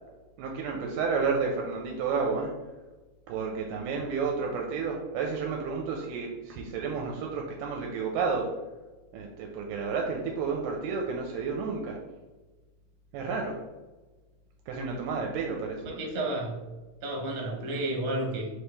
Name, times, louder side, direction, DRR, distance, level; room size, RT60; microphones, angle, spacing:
voice 1, 0.4-2.5 3.3-8.5 9.1-12.0 13.1-13.6 14.7-16.0, right 5 dB, 80° right, 1 dB, 2.0 m, -31 dB
voice 2, 15.8-16.6 17.0-18.5, right 1 dB, 65° right, -1 dB, 1.9 m, -31 dB
4.8 x 3.1 x 3.3 m, 1.2 s
omnidirectional pair, 3.8 m